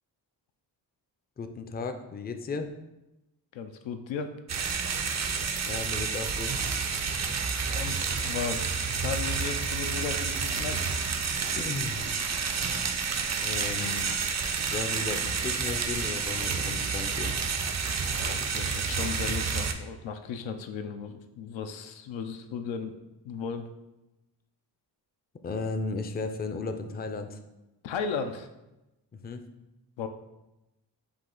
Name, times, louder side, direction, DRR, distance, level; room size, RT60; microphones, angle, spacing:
voice 1, 1.4-2.7 5.7-6.6 11.5-12.1 13.2-14.1 14.6-17.3 25.4-27.4 29.2-29.4, left 3 dB, 25° left, 7 dB, 0.4 m, -35 dB
voice 2, 3.5-4.4 7.7-10.9 18.2-22.9 23.2-23.7 27.8-28.5 30.0-30.1, left 6 dB, 85° left, 7 dB, 0.5 m, -35 dB
sound 1, 4.5-19.7, right 5 dB, 40° right, 0.5 m, -30 dB
4.9 x 2.5 x 3.7 m, 0.97 s
cardioid pair, 50°, 44 cm